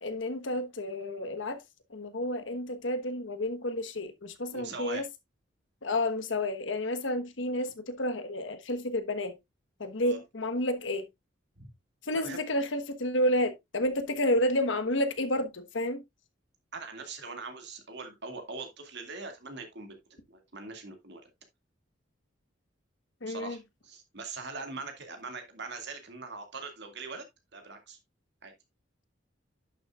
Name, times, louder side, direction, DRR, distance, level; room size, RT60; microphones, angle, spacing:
voice 1, 0.0-1.6 1.9-5.0 5.8-9.3 9.8-11.1 12.0-16.0 23.2-23.6, left 1 dB, 80° left, 1.3 m, -30 dB
voice 2, 4.5-5.0 10.0-10.2 11.6-11.7 12.1-12.4 16.7-20.0 20.3-21.2 23.3-27.3 27.5-28.0 28.4-28.5, right 3 dB, 65° right, 2.2 m, -41 dB
11.0 x 6.9 x 2.4 m
head